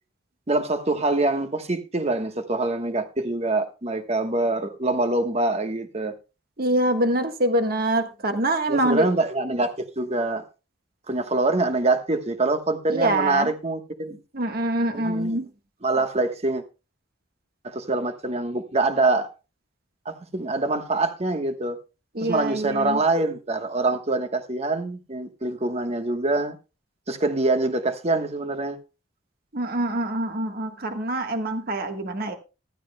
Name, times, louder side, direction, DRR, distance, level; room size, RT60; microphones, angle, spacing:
voice 1, 0.5-6.1 8.7-10.4 11.1-14.2 14.9-15.4 15.8-16.6 17.6-19.3 20.0-21.8 22.2-26.6 27.1-28.8, right 2 dB, 35° right, 1.2 m, -25 dB
voice 2, 6.6-9.1 12.9-13.5 14.3-15.5 22.1-23.0 29.5-32.3, right 1 dB, 55° right, 1.4 m, -25 dB
15.0 x 13.0 x 2.2 m
head